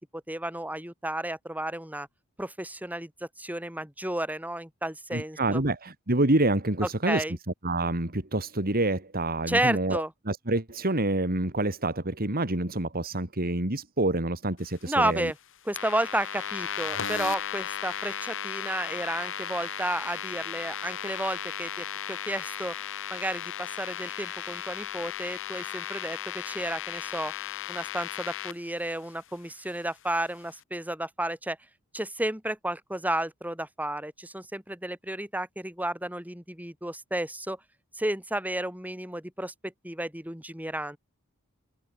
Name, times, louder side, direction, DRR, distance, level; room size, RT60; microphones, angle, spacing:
voice 1, 0.1-2.1 2.4-5.6 7.0-7.4 9.5-10.1 14.9-15.4 15.7-22.7 23.1-27.3 27.7-31.6 31.9-37.6 37.9-41.0, right 1 dB, 5° right, 7.1 m, -32 dB
voice 2, 5.1-7.2 7.6-15.3, right 2 dB, 40° right, 2.8 m, -27 dB
sound 1, 15.8-28.5, left 9 dB, 60° left, 2.4 m, -35 dB
open air
head